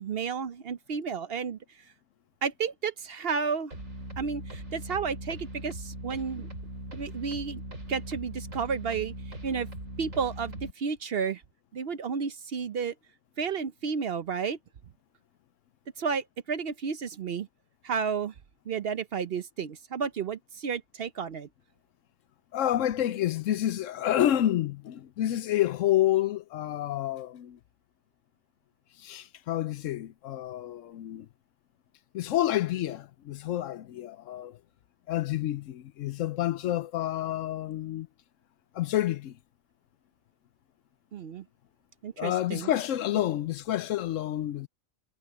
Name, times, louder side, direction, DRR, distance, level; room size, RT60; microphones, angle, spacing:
voice 1, 0.0-1.6 2.4-3.7 4.2-6.5 6.9-7.6 7.9-9.1 9.4-9.7 10.0-11.4 11.7-12.9 13.4-14.6 16.0-17.5 17.8-18.3 18.7-21.5 41.1-41.4 42.0-42.7, right 6 dB, 55° right, 0.8 m, -32 dB
sound 1, 3.7-10.7, right 1 dB, 70° right, 5.9 m, -40 dB
voice 2, 22.5-27.6 29.0-31.3 32.1-34.6 35.1-38.1 38.7-39.4 42.2-44.7, left 12 dB, 75° left, 0.9 m, -29 dB
omnidirectional pair, 1.4 m